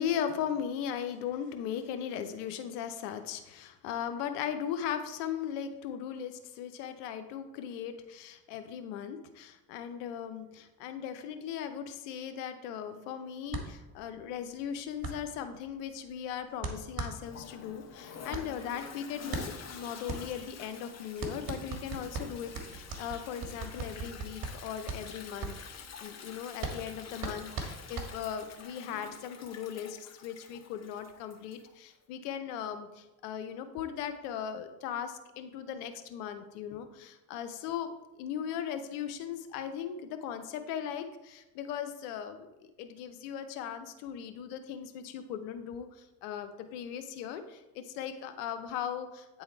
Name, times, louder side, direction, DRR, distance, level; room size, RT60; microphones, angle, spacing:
voice 1, 0.0-42.5 42.8-49.4, left 8 dB, 85° left, 9 dB, 0.8 m, -38 dB
sound 1, 13.5-28.6, right 3 dB, 50° right, 1.6 m, -40 dB
Toilet flush, 17.1-31.7, left 6 dB, 35° left, 0.9 m, -48 dB
8.8 x 3.7 x 4.4 m, 1.0 s
supercardioid pair, 80°, 45 cm